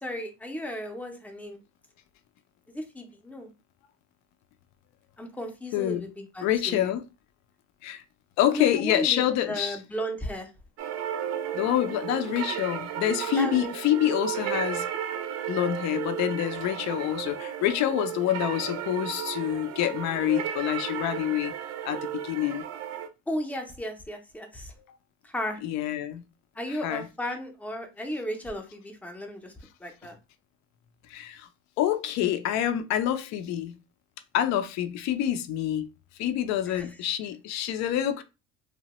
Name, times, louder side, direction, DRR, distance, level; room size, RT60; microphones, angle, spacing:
voice 1, 0.0-1.6 2.7-3.5 5.2-6.9 8.5-10.5 13.4-13.7 23.3-24.7 25.2-25.6 26.6-29.5 29.8-30.2 36.7-36.9, equal, 5° left, 0.5 m, -35 dB
voice 2, 5.7-6.1 6.4-7.0 7.8-8.0 8.4-9.8 11.5-14.9 15.5-21.5 21.8-22.6 25.6-26.2 26.7-27.0 31.1-31.5 31.8-33.8 34.3-35.9 36.2-38.2, left 11 dB, 65° left, 0.5 m, -27 dB
sound 1, 10.8-23.1, right 9 dB, 60° right, 0.5 m, -34 dB
2.9 x 2.1 x 2.9 m
cardioid pair, 125°, 30 cm